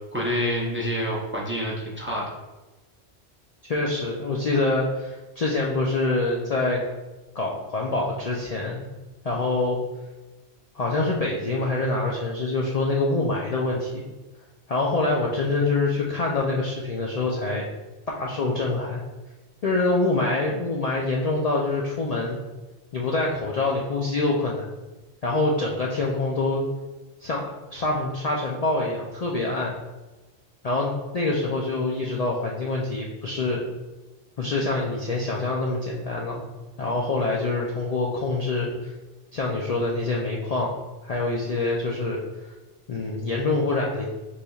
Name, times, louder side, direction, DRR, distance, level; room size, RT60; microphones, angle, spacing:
voice 1, 0.1-2.3, equal, 15° right, -3 dB, 0.6 m, -27 dB
voice 2, 3.7-6.8 7.3-8.9 9.2-9.8 10.7-14.0 14.7-17.7 18.1-19.0 19.6-22.4 22.9-24.7 25.2-26.7 27.2-29.8 30.6-33.6 34.4-36.4 36.8-38.9 39.3-40.7 41.0-42.2 42.9-44.0, left 2 dB, 50° left, -2 dB, 0.5 m, -25 dB
6.7 x 3.2 x 2.3 m, 1.1 s
omnidirectional pair, 1.1 m